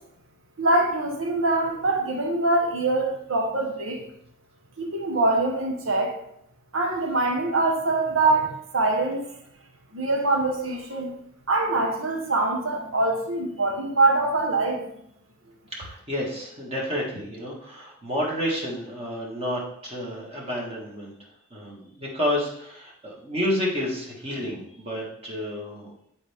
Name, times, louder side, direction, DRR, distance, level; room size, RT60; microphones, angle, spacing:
voice 1, 0.6-4.0 4.8-6.2 6.7-9.2 9.9-11.1 11.5-14.9, right 2 dB, 80° right, 2 dB, 1.3 m, -24 dB
voice 2, 15.7-21.1 21.5-25.9, left 1 dB, 30° right, -4 dB, 1.8 m, -30 dB
10.0 x 4.3 x 3.6 m, 0.72 s
head